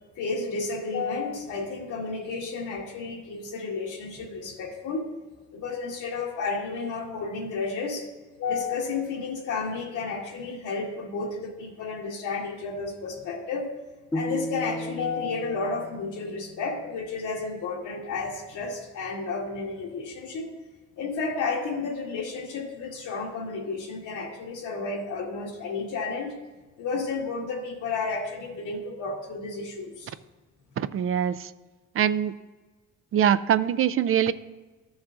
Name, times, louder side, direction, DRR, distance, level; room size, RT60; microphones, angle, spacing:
voice 1, 0.2-5.1 5.5-8.1 8.4-13.7 14.1-20.5 21.0-26.3 26.8-30.1, left 4 dB, 80° left, 0 dB, 1.7 m, -32 dB
sound 1, 14.1-17.3, left 1 dB, 10° left, 0.4 m, -35 dB
voice 2, 30.8-31.5 31.9-32.3 33.1-34.3, right 9 dB, 45° right, 14 dB, 0.4 m, -23 dB
13.5 x 7.1 x 2.5 m, 1.2 s
cardioid pair, 90°, 30 cm